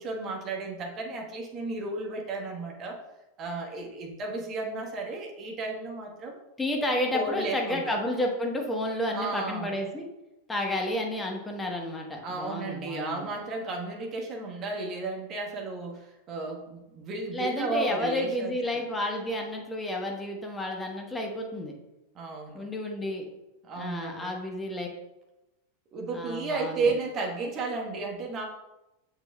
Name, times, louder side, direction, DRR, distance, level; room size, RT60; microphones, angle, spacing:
voice 1, 0.0-3.0 3.4-6.4 7.1-8.0 9.1-9.8 12.2-18.8 22.1-22.6 23.7-24.3 25.9-28.4, right 3 dB, 30° right, 0 dB, 1.3 m, -33 dB
voice 2, 6.6-10.0 10.5-13.3 17.3-21.7 22.5-23.2 23.8-24.9 26.1-27.0, left 1 dB, 10° left, 1 dB, 1.2 m, -31 dB
6.8 x 6.8 x 2.3 m, 0.96 s
figure-of-eight pair, 90°, 0 cm